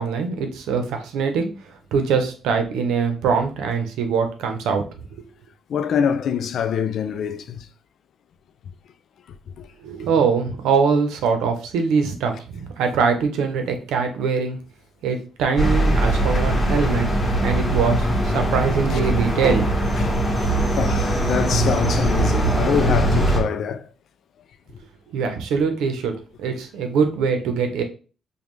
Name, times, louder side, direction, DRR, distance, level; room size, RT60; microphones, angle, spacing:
voice 1, 0.0-1.5 1.9-4.8 5.2-5.3 9.8-14.6 15.0-18.1 18.3-19.7 25.1-27.8, right 5 dB, 85° right, 0.7 m, -23 dB
voice 2, 5.7-7.7 9.6-9.7 18.9-19.1 20.0-20.2 20.7-23.9, left 7 dB, 65° left, 0.4 m, -25 dB
sound 1, 15.6-23.4, right 1 dB, 20° left, 1.3 m, -21 dB
5.2 x 2.3 x 3.1 m
cardioid pair, 90°, 0 cm